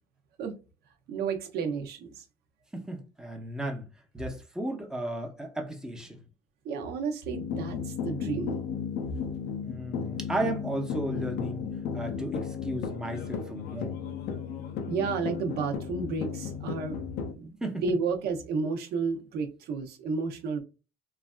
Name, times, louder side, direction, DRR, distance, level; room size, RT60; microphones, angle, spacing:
voice 1, 1.1-2.2 6.6-8.6 14.9-17.0 17.3-20.6, right 5 dB, 70° right, 0.8 m, -32 dB
voice 2, 2.7-3.9 4.1-6.2 9.6-11.6 11.9-14.0 17.6-17.8, right 1 dB, 5° right, 0.7 m, -34 dB
sound 1, 7.3-17.3, left 7 dB, 80° left, 0.6 m, -34 dB
3.2 x 2.5 x 2.2 m
cardioid pair, 110°, 17 cm